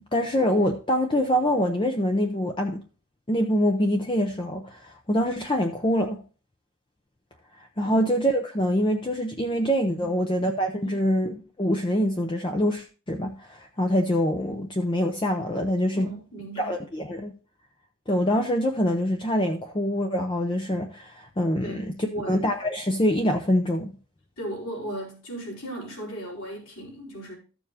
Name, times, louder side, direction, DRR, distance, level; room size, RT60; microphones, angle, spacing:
voice 1, 0.1-2.8 3.3-6.2 7.8-16.1 16.6-17.3 18.1-22.0 22.3-23.9, equal, 20° left, 0.6 m, -25 dB
voice 2, 15.9-16.8 21.6-22.4 24.4-27.3, right 1 dB, 65° left, 4.4 m, -36 dB
14.0 x 6.9 x 2.8 m
head